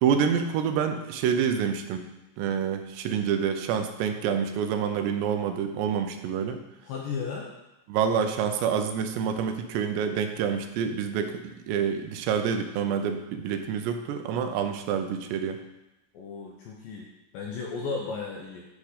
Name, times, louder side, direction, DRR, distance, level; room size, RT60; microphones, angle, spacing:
voice 1, 0.0-2.0 2.4-6.6 7.9-15.6, right 7 dB, 85° right, 7 dB, 2.9 m, -27 dB
voice 2, 6.8-7.5 16.1-17.1 17.3-18.7, left 5 dB, 80° left, -2 dB, 2.0 m, -34 dB
10.0 x 3.6 x 6.5 m, 0.96 s
omnidirectional pair, 4.9 m